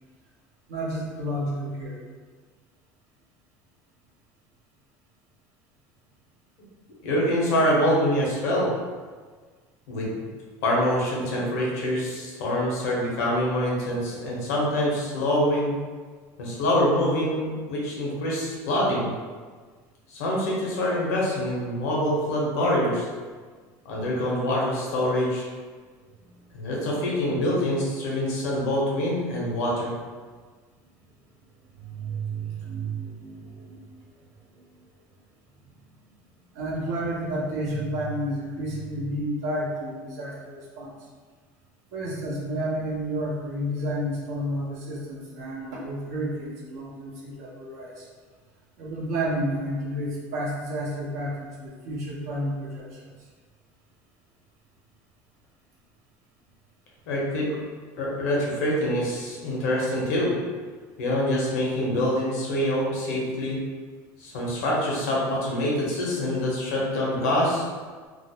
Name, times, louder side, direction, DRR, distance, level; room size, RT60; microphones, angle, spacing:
voice 1, 0.7-2.0 31.8-33.9 34.5-34.6 36.5-40.9 41.9-48.1 48.8-53.1, right 1 dB, 90° right, -4 dB, 0.7 m, -31 dB
voice 2, 7.0-8.7 9.9-10.1 10.6-15.7 16.4-19.1 20.1-23.1 23.8-25.5 26.5-29.9 57.1-57.5 58.0-60.3 61.0-63.6 64.2-67.6, left 1 dB, 85° left, -4 dB, 0.8 m, -25 dB
2.4 x 2.0 x 2.8 m, 1.5 s
supercardioid pair, 105°, 8 cm